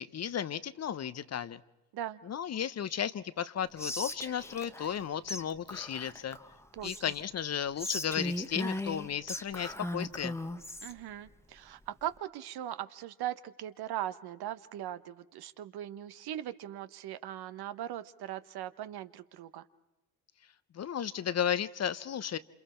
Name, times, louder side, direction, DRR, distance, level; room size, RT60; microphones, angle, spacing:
voice 1, 0.0-1.6 2.3-6.4 6.8-10.4 20.7-22.4, left 9 dB, 40° left, 16 dB, 0.7 m, -34 dB
Whispering, 3.8-5.0 5.3-5.4 5.7-7.2 7.8-10.9, left 1 dB, 5° left, 1.0 m, -38 dB
voice 2, 10.8-19.6, right 12 dB, 60° right, 13 dB, 1.0 m, -39 dB
27.5 x 27.0 x 4.4 m, 0.98 s
supercardioid pair, 65°, 42 cm